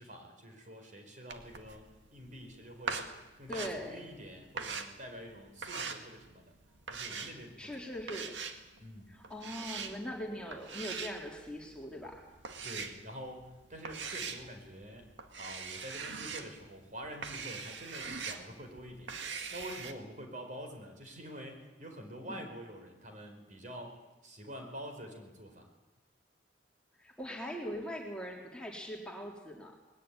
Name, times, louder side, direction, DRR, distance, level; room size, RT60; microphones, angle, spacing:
voice 1, 0.0-6.5 6.9-7.9 8.8-9.1 12.6-15.1 15.4-19.1 19.5-25.7, equal, 45° right, 4 dB, 4.8 m, -47 dB
sound 1, 1.3-19.9, right 5 dB, 90° right, 2.0 m, -42 dB
voice 2, 3.5-4.0 7.6-8.4 9.1-12.3 22.3-22.5 27.0-29.7, equal, 5° left, -1 dB, 3.6 m, -41 dB
21.0 x 17.5 x 9.9 m, 1.0 s
head